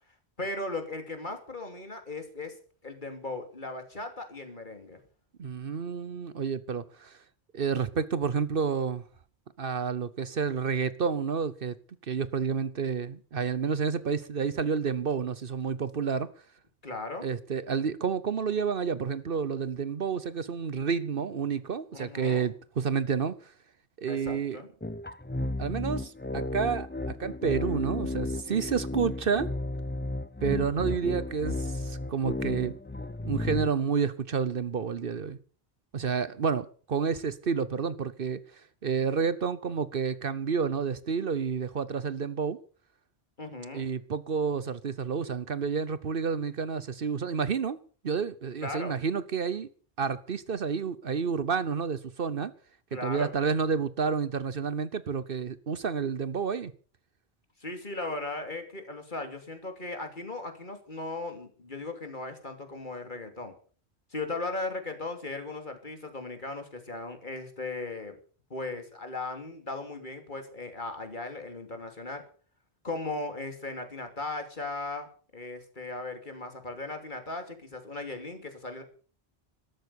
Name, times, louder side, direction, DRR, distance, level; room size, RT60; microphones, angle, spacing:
voice 1, 0.4-2.5 2.8-5.0 16.8-17.3 21.9-22.5 24.1-24.7 43.4-43.9 48.6-49.0 52.9-53.3 57.6-63.5 64.1-68.2 68.5-72.2 72.8-75.1 75.3-78.8, left 2 dB, 50° left, 3.0 m, -37 dB
voice 2, 5.4-7.2 7.5-9.0 9.6-11.7 12.1-16.3 17.2-23.5 24.0-24.6 25.6-29.5 30.4-32.8 33.2-35.4 35.9-38.4 38.8-42.6 43.7-47.8 48.0-49.7 50.0-52.5 53.0-56.7, right 6 dB, 60° right, 1.0 m, -30 dB
sound 1, 24.8-33.8, left 2 dB, 15° left, 0.6 m, -33 dB
13.0 x 13.0 x 6.9 m
omnidirectional pair, 1.1 m